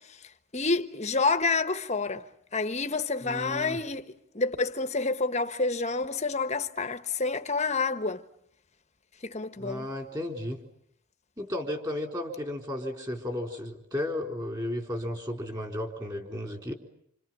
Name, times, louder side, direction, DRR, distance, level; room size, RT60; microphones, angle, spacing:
voice 1, 0.5-2.3 2.5-8.2 9.2-9.9, left 3 dB, 30° left, 1.3 m, -28 dB
voice 2, 3.2-3.8 9.6-10.6 11.4-16.7, left 1 dB, 20° right, 4.0 m, -34 dB
28.5 x 27.5 x 7.6 m
head